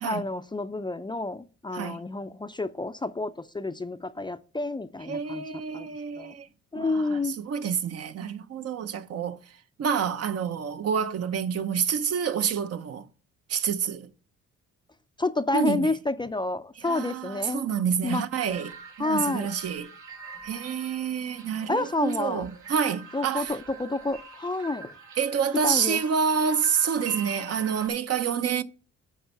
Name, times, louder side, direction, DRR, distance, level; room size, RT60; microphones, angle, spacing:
voice 1, 0.0-5.4 5.7-5.9 6.2-6.3 6.7-7.4 15.2-17.6 18.0-18.3 19.0-19.5 21.7-22.5 23.1-24.9 25.6-26.0, left 2 dB, 15° left, 0.5 m, -29 dB
voice 2, 5.0-6.5 6.7-9.4 9.8-13.1 13.5-14.1 15.5-15.9 16.8-19.9 20.4-23.6 25.2-28.6, right 7 dB, 55° right, 0.8 m, -28 dB
sound 1, 18.5-27.9, right 5 dB, 80° right, 2.0 m, -44 dB
10.5 x 4.3 x 5.5 m
cardioid pair, 90°, 30 cm